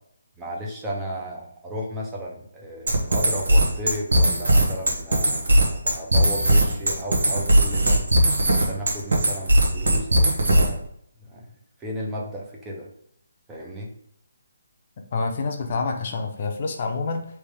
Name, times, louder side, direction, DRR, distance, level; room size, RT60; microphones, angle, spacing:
voice 1, 0.4-8.0 8.5-10.8 11.3-11.5 11.8-12.9 13.5-13.9 15.7-15.8, equal, 10° right, -2 dB, 0.7 m, -34 dB
sound 1, 2.9-10.9, right 1 dB, 80° right, 1.3 m, -19 dB
voice 2, 15.1-17.3, left 4 dB, 35° left, 3 dB, 0.7 m, -27 dB
3.4 x 3.2 x 4.8 m, 0.69 s
hypercardioid pair, 170°, 0 cm